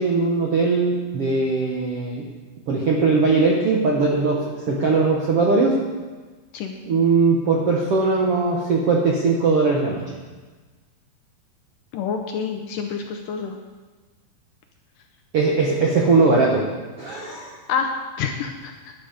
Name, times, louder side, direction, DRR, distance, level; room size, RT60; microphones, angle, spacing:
voice 1, 0.0-2.3 2.7-5.8 6.9-10.0 15.3-16.7 17.0-17.6, right 4 dB, 65° right, -2 dB, 1.4 m, -20 dB
voice 2, 11.9-13.6 17.7-17.9 18.2-18.9, left 6 dB, 75° left, 4 dB, 2.1 m, -27 dB
12.5 x 11.0 x 5.1 m, 1.3 s
omnidirectional pair, 4.5 m